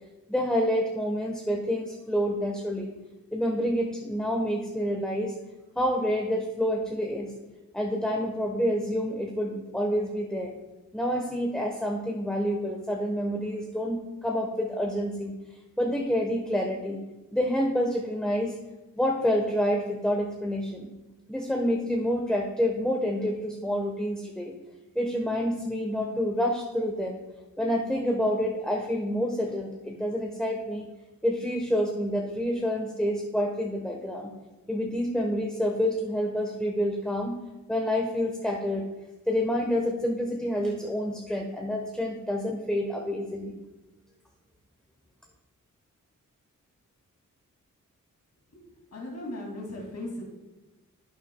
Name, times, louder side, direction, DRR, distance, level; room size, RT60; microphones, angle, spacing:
voice 1, 0.3-2.9 3.3-5.4 5.7-7.3 7.7-10.5 10.9-15.3 15.8-17.0 17.3-18.6 18.9-20.9 21.3-24.5 24.9-27.2 27.6-30.9 31.2-34.3 34.7-37.3 37.7-38.9 39.3-43.6, equal, ahead, 1 dB, 1.1 m, -28 dB
voice 2, 48.9-50.2, left 1 dB, 55° left, -3 dB, 2.5 m, -37 dB
11.5 x 8.2 x 2.3 m, 1.1 s
cardioid pair, 65°, 32 cm